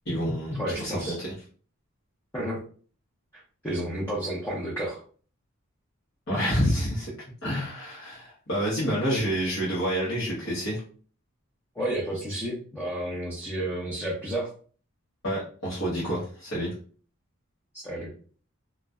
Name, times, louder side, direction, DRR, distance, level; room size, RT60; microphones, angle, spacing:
voice 1, 0.1-1.1 6.3-7.1 7.4-10.8 15.2-16.7, equal, 55° left, -8 dB, 0.8 m, -28 dB
voice 2, 0.6-1.2 2.3-2.6 3.3-5.0 11.7-14.5 17.7-18.1, right 1 dB, 10° left, -7 dB, 0.5 m, -31 dB
2.6 x 2.1 x 2.2 m, 0.42 s
head